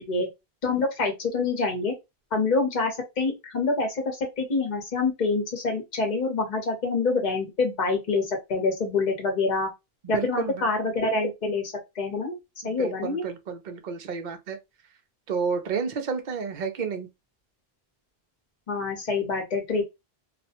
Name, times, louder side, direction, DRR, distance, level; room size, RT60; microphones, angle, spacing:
voice 1, 0.6-1.9 2.3-9.7 10.1-12.4 12.6-13.2 18.7-19.8, left 3 dB, 45° left, 1.0 m, -26 dB
voice 2, 10.0-10.7 12.6-14.6 15.3-17.1, right 5 dB, 55° right, 0.6 m, -31 dB
2.4 x 2.2 x 2.8 m
omnidirectional pair, 1.0 m